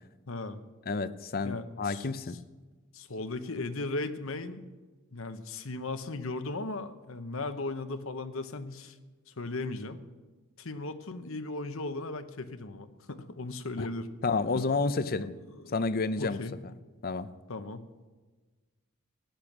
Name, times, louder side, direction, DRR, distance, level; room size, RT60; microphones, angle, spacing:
voice 1, 0.3-0.6 1.4-2.1 2.9-4.6 5.1-9.0 9.3-10.0 10.6-14.1 14.5-14.6 15.5-15.7 16.2-16.6 17.5-17.8, left 2 dB, 65° left, 10 dB, 1.0 m, -37 dB
voice 2, 0.9-2.4 13.8-13.9 14.2-15.4 15.7-16.4 17.0-17.3, left 4 dB, 45° left, 14 dB, 0.6 m, -30 dB
16.0 x 10.5 x 6.1 m, 1.3 s
head